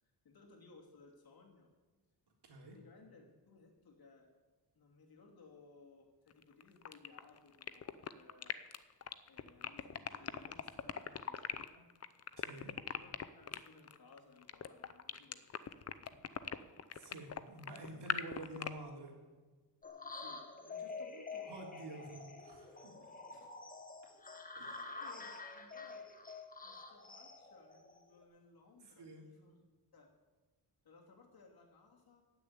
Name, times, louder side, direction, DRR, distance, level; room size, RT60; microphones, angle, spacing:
voice 1, 0.2-1.7 2.6-4.3 4.7-8.6 9.2-11.9 12.9-16.0 17.9-18.0 20.1-21.5 23.3-23.5 25.0-26.1 26.6-29.6 29.9-30.1 30.8-32.2, left 4 dB, 60° left, 0 dB, 2.9 m, -61 dB
voice 2, 2.4-2.8 12.4-12.7 16.9-19.2 21.5-23.1 24.6-25.0 28.8-29.3, right 2 dB, 70° right, 0 dB, 3.4 m, -49 dB
sound 1, 6.3-18.7, left 8 dB, 35° left, 0.6 m, -41 dB
sound 2, 19.8-28.2, left 4 dB, 20° left, 1.3 m, -48 dB
15.0 x 6.9 x 9.6 m, 1.3 s
wide cardioid pair, 160°, 41 cm